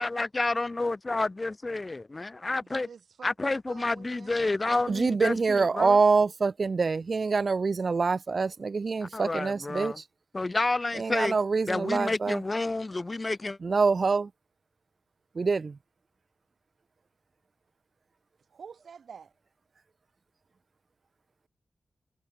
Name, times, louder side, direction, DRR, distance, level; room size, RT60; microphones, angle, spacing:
voice 1, 0.0-2.9 3.2-6.0 9.0-10.0 10.3-11.4 11.7-13.6, left 2 dB, 30° left, 1.9 m, -30 dB
voice 2, 2.6-4.3 18.5-19.3, right 6 dB, 90° right, 4.4 m, -48 dB
voice 3, 4.9-10.0 11.0-12.4 13.6-14.3 15.4-15.8, right 4 dB, 50° right, 1.1 m, -25 dB
wide cardioid pair, 105°, 0 cm